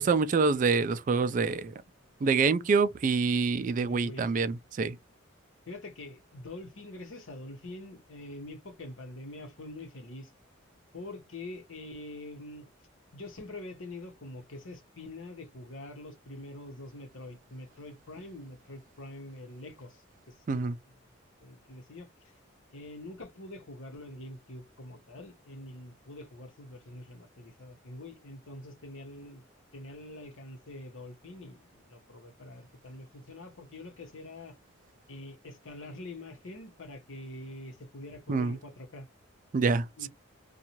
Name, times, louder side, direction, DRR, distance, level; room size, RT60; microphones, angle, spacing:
voice 1, 0.0-1.7 2.2-5.0 20.5-20.7 38.3-38.6 39.5-40.1, right 4 dB, 40° right, 0.3 m, -26 dB
voice 2, 3.7-4.3 5.7-10.3 10.9-12.7 13.1-20.6 21.4-22.3 22.7-29.4 29.7-34.6 35.1-39.1 40.0-40.1, left 2 dB, 75° left, 1.0 m, -45 dB
2.6 x 2.3 x 2.9 m
head